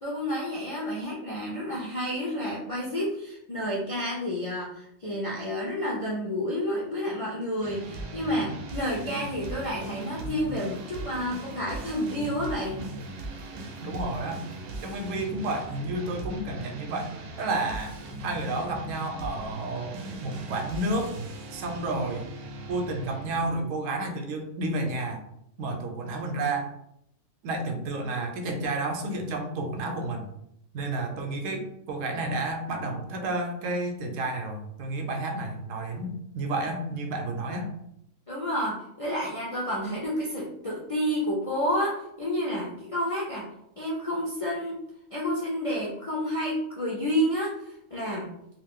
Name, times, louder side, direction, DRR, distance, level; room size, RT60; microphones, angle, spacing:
voice 1, 0.0-12.8 38.3-43.5 43.8-44.8 45.1-48.3, equal, 55° left, -5 dB, 0.3 m, -30 dB
sound 1, 7.6-23.6, right 1 dB, 60° right, 0.6 m, -39 dB
voice 2, 13.8-14.4 14.8-17.1 17.4-22.3 22.7-25.3 25.6-26.7 27.4-30.3 30.7-37.7, right 2 dB, 80° right, 4 dB, 1.0 m, -31 dB
2.4 x 2.3 x 3.5 m, 0.77 s
omnidirectional pair, 1.3 m